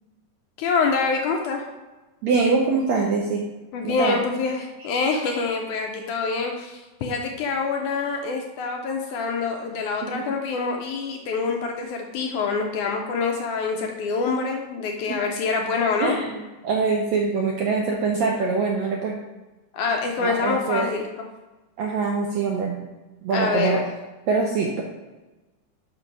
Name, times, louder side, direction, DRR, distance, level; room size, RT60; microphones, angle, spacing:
voice 1, 0.6-1.7 3.7-16.1 19.7-21.3 23.3-23.8, left 4 dB, 75° left, 2 dB, 1.9 m, -26 dB
voice 2, 2.2-3.4 3.8-4.2 10.0-10.2 16.0-16.3 16.6-19.2 20.2-20.9 21.8-22.8 23.2-23.8 24.3-24.8, right 4 dB, 75° right, 0 dB, 1.6 m, -23 dB
6.0 x 6.0 x 5.2 m, 1.1 s
omnidirectional pair, 4.0 m